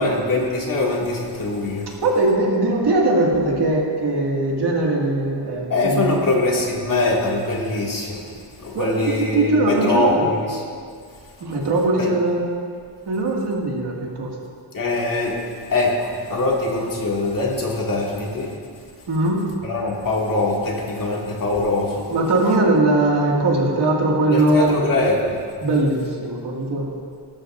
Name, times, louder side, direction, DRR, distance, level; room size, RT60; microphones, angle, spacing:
voice 1, 0.0-1.9 5.7-8.3 8.6-10.6 12.0-12.1 14.7-15.4 15.7-18.5 19.6-22.1 24.3-25.3, left 2 dB, 45° left, -3 dB, 2.3 m, -22 dB
voice 2, 2.0-6.3 8.7-10.2 11.4-12.4 13.1-14.3 19.1-19.4 22.1-24.8 25.6-26.9, right 2 dB, 55° right, -2 dB, 2.2 m, -20 dB
18.5 x 13.0 x 2.6 m, 2.2 s
wide cardioid pair, 145°, 47 cm